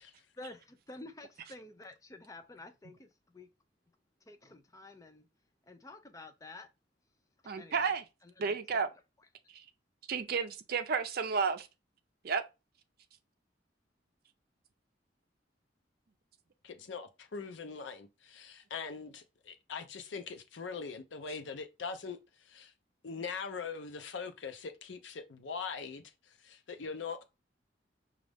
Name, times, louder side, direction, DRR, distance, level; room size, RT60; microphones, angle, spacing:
voice 1, 0.4-3.5 4.3-5.3 5.7-6.7 7.4-7.9 8.2-8.8, left 2 dB, 20° left, 0.5 m, -50 dB
voice 2, 7.5-8.0 8.4-8.9 10.1-11.7 12.2-12.4, right 5 dB, 55° right, 0.5 m, -31 dB
voice 3, 16.6-22.7 23.0-27.2, left 5 dB, 85° left, 0.6 m, -42 dB
5.1 x 2.4 x 3.3 m
head